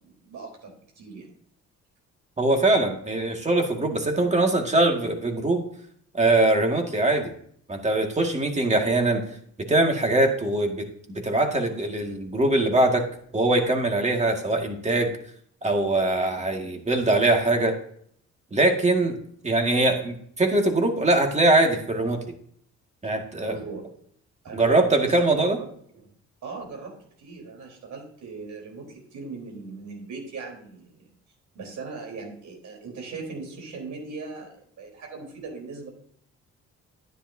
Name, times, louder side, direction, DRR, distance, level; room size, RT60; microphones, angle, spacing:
voice 1, 0.0-1.3 23.4-23.9 24.4-24.7 24.9-25.2 25.4-25.5 26.4-26.9 27.2-31.1 31.5-34.5 34.8-35.9, right 4 dB, 70° right, 1 dB, 4.1 m, -39 dB
voice 2, 2.4-5.6 6.1-7.3 7.7-9.2 9.7-10.9 11.2-13.0 13.3-15.1 15.6-17.8 18.5-19.2 19.4-22.2 23.0-23.6 24.5-25.6, right 2 dB, 20° right, 3 dB, 2.0 m, -22 dB
10.5 x 10.0 x 2.8 m, 0.62 s
cardioid pair, 90°, 30 cm